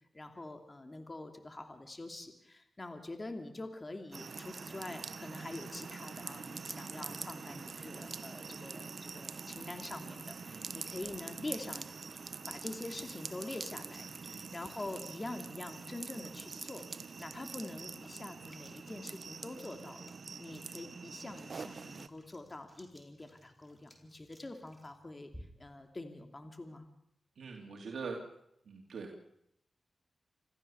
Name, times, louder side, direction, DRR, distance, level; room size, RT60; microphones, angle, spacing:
voice 1, 0.1-11.9 12.5-25.3 25.6-26.9, left 2 dB, 35° left, 6 dB, 2.8 m, -45 dB
sound 1, 4.1-22.1, right 5 dB, 65° right, 1.0 m, -45 dB
voice 2, 10.4-10.8 14.3-14.5 27.4-28.2 28.6-29.2, right 4 dB, 85° right, 1 dB, 2.5 m, -43 dB
sound 2, 11.0-25.8, equal, 5° left, 4.4 m, -61 dB
26.5 x 14.5 x 7.0 m, 0.76 s
cardioid pair, 55°, 0 cm